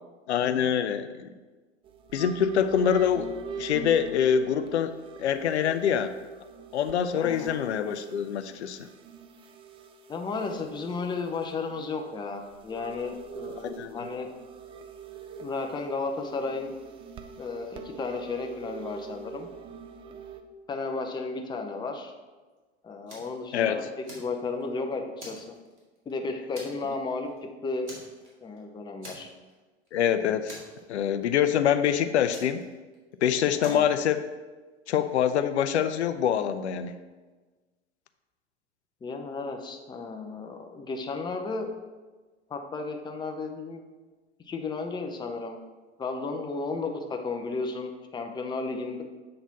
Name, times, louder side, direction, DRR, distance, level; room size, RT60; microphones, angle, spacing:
voice 1, 0.3-1.3 2.1-3.3 3.6-4.9 5.2-6.2 6.7-8.9 13.6-14.0 23.5-23.8 29.9-30.6 30.9-32.6 33.2-34.2 34.9-36.9, left 8 dB, 75° left, 10 dB, 0.5 m, -25 dB
sound 1, 1.8-20.4, right 6 dB, 15° right, 0.3 m, -44 dB
voice 2, 7.1-7.6 10.1-14.3 15.4-16.7 17.4-19.5 20.7-22.1 22.8-23.9 24.1-25.5 26.1-27.3 27.6-27.9 28.4-29.3 33.6-33.8 39.0-41.7 42.5-43.8 44.5-45.6 46.0-49.0, left 3 dB, 15° left, 3 dB, 0.6 m, -33 dB
Fire, 23.1-23.4 23.8-24.7 25.2-26.1 26.5-27.0 27.2-27.4 27.8-28.6 29.0-29.6 29.9-30.0 30.5-31.3 32.3-33.1 33.6-34.0, equal, 85° right, 2.1 m, -45 dB
7.5 x 4.0 x 4.0 m, 1.3 s
figure-of-eight pair, 90°, 34 cm